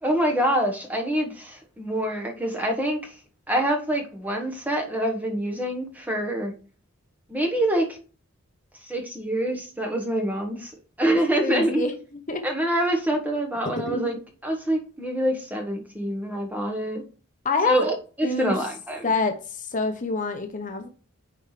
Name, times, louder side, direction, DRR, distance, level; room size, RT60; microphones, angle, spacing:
voice 1, 0.0-3.1 3.5-6.5 7.3-8.0 8.8-10.7 11.0-11.8 12.4-17.0 17.6-19.1, right 1 dB, 10° right, 1.3 m, -26 dB
voice 2, 11.4-12.0 12.3-12.4 13.9-14.1 17.4-17.8 18.2-18.6 19.0-20.9, left 3 dB, 35° left, 0.8 m, -26 dB
9.7 x 4.5 x 3.3 m
head